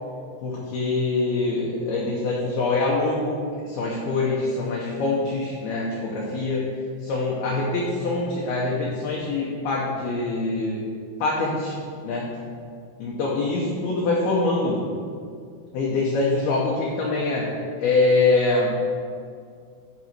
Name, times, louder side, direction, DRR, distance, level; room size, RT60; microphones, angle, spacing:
voice 1, 0.4-6.7 7.0-10.8 11.2-11.8 12.0-12.3 13.0-14.8 15.7-17.5 17.8-18.8, left 3 dB, 75° left, -4 dB, 2.3 m, -24 dB
10.5 x 4.0 x 6.0 m, 2.2 s
omnidirectional pair, 5.6 m